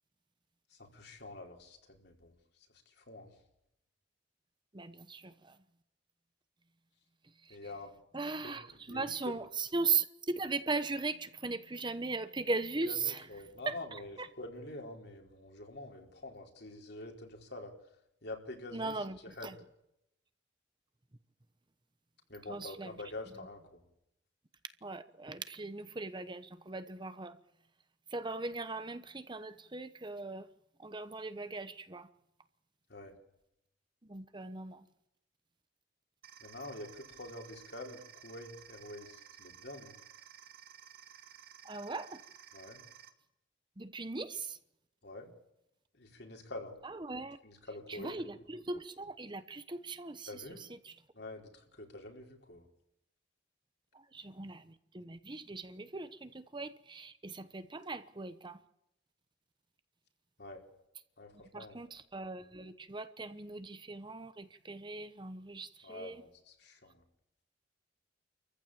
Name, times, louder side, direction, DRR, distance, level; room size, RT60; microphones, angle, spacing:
voice 1, 0.7-2.4 2.9-3.3 7.5-7.9 8.4-8.5 8.9-9.1 12.8-17.7 18.2-18.9 19.4-19.5 22.3-23.8 32.9-33.1 36.4-39.9 42.5-42.8 45.0-45.3 46.0-46.8 47.4-48.1 50.3-50.7 51.1-52.6 60.4-60.6 61.2-61.8 65.8-67.0, left 2 dB, 60° left, 4.4 m, -46 dB
voice 2, 4.7-5.6 7.2-7.6 8.1-13.3 13.6-14.3 18.7-19.6 22.5-23.0 24.8-27.4 28.1-30.5 30.8-32.1 34.0-34.9 41.6-42.2 43.8-44.6 46.8-47.4 47.9-51.0 53.9-58.6 61.5-66.2, right 3 dB, 25° right, 1.0 m, -39 dB
sound 1, 36.2-43.1, right 9 dB, 55° right, 2.1 m, -55 dB
28.5 x 15.0 x 8.7 m
head